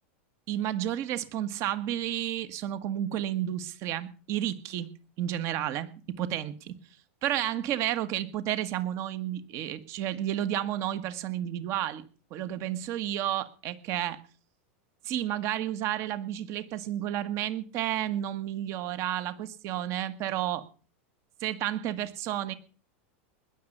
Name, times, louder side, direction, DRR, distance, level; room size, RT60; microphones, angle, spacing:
voice 1, 0.5-4.9 5.2-6.7 7.2-12.0 12.3-14.2 15.0-20.6 21.4-22.5, right 12 dB, 45° right, 14 dB, 1.5 m, -31 dB
20.5 x 7.2 x 6.7 m, 0.37 s
supercardioid pair, 140°, 7 cm